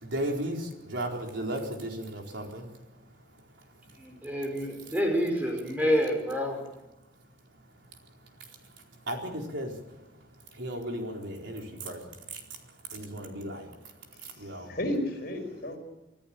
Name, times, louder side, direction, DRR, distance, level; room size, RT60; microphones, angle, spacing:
voice 1, 0.0-2.6 9.1-9.7 10.6-12.0 12.9-13.7 14.4-14.7, right 1 dB, 70° right, 1 dB, 4.3 m, -34 dB
voice 2, 4.0-6.6, equal, 10° right, 3 dB, 5.1 m, -28 dB
voice 3, 14.4-15.8, left 1 dB, 50° left, 3 dB, 5.1 m, -33 dB
25.5 x 14.0 x 8.7 m, 0.99 s
head